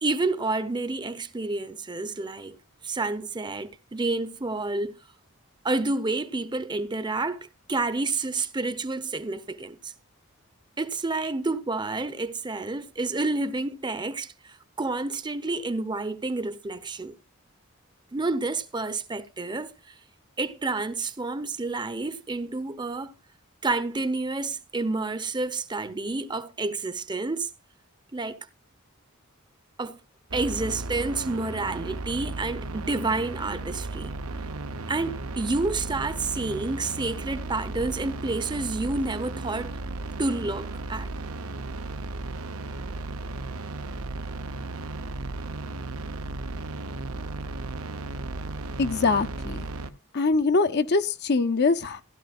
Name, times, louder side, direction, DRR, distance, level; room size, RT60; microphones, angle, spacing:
voice 1, 0.0-2.6 2.8-4.9 5.6-9.9 10.8-17.1 18.1-19.7 20.4-23.1 23.6-27.5 28.1-28.4 29.8-30.0 30.3-34.1 34.9-39.7 40.2-41.1, right 3 dB, 20° right, 0.7 m, -29 dB
sound 1, 30.3-49.9, right 2 dB, 85° right, 0.9 m, -35 dB
voice 2, 48.8-49.7 50.1-52.0, left 3 dB, 50° left, 0.6 m, -23 dB
16.0 x 11.5 x 2.5 m
head